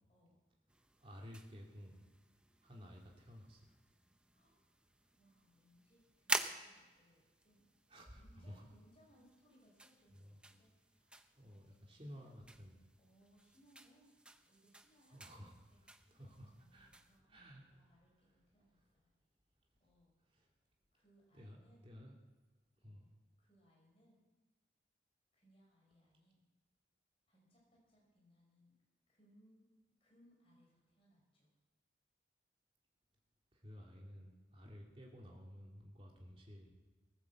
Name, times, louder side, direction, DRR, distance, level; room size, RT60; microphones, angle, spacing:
sound 1, 0.7-17.2, right 2 dB, 5° right, 0.6 m, -49 dB
voice 1, 1.0-2.0 2.6-3.6 7.9-8.5 10.1-10.4 11.4-12.7 15.1-15.5 15.8-16.9 17.3-17.9 20.3-20.5 21.3-21.6 21.8-22.2 22.8-23.0 33.5-36.7, equal, 30° right, -1 dB, 3.0 m, -54 dB
voice 2, 5.1-12.5 13.0-14.1 14.5-15.2 16.0-19.1 19.8-20.1 20.9-21.9 22.8-23.1 23.4-24.2 25.3-26.5 27.3-28.7 29.1-29.7 30.0-31.5, equal, 30° left, -3 dB, 5.5 m, -70 dB
19.0 x 8.1 x 7.5 m, 1.3 s
head